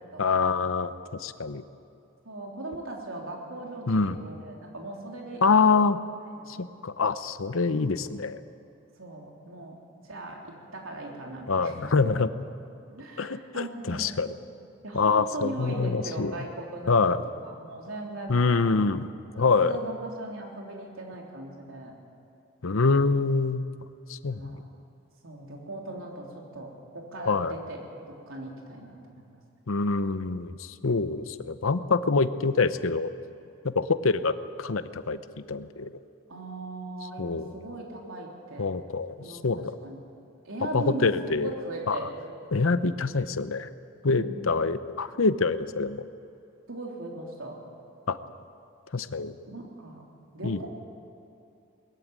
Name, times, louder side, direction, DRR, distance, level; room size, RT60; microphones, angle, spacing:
voice 1, 0.2-1.6 3.9-4.2 5.4-6.0 6.5-8.4 11.5-12.3 13.2-14.3 14.9-16.3 16.9-17.2 18.3-19.1 19.4-19.7 22.6-23.7 24.1-24.6 27.3-27.5 29.7-33.1 33.6-35.2 35.5-35.9 37.2-37.5 38.6-39.1 39.4-39.7 40.7-41.5 41.9-42.0 42.5-43.7 44.0-46.0 48.1-48.2 48.9-49.3 50.4-50.7, left 4 dB, 80° left, 12 dB, 0.8 m, -25 dB
voice 2, 2.2-5.9 6.3-6.5 9.0-9.8 10.0-11.7 12.9-14.2 14.8-18.6 19.6-21.9 24.3-24.6 25.2-27.8 28.1-29.4 36.3-38.7 39.2-40.0 40.4-41.1 41.4-42.1 44.2-44.3 46.7-47.6 49.4-50.0 50.3-50.7, right 2 dB, 80° right, -1 dB, 3.6 m, -39 dB
20.5 x 14.5 x 9.0 m, 2.7 s
head